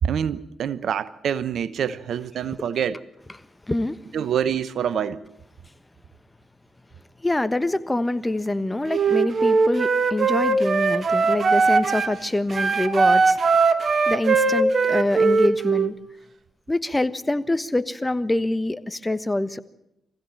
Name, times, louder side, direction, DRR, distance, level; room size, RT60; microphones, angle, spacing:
voice 1, 0.0-3.0 4.1-5.2, right 8 dB, 65° right, 0.8 m, -26 dB
voice 2, 3.7-4.0 7.2-13.4 14.1-15.9 16.7-19.6, left 1 dB, 20° left, 1.3 m, -25 dB
Wind instrument woodwind instrument, 8.9-12.2 12.5-15.9, right 4 dB, 50° right, 1.5 m, -20 dB
24.5 x 16.0 x 8.9 m
hypercardioid pair, 40°, 0 cm